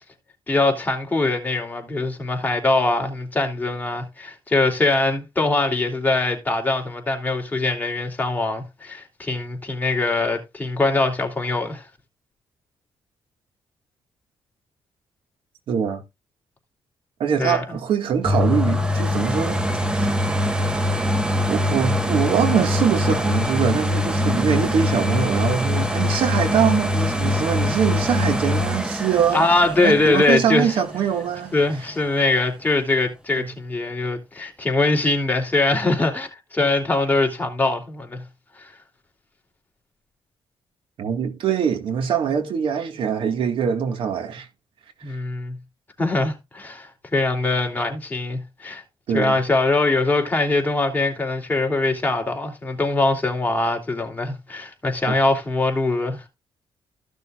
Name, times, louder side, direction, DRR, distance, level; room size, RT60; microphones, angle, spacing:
voice 1, 0.5-11.8 17.4-17.6 29.3-30.8 31.5-38.2 38.6-38.7 45.0-45.6 46.0-48.8 49.1-56.3, left 2 dB, 20° left, 3.1 m, -22 dB
voice 2, 15.7-16.0 17.2-19.6 19.9-20.2 21.5-29.5 29.8-31.5 33.3-33.5 41.0-44.5 45.1-45.2 49.1-49.4 55.1-55.2, right 7 dB, 75° right, 2.0 m, -23 dB
sound 1, 18.2-31.9 32.5-32.6, left 1 dB, 10° right, 1.3 m, -23 dB
15.0 x 6.7 x 2.5 m
cardioid pair, 90°, 9 cm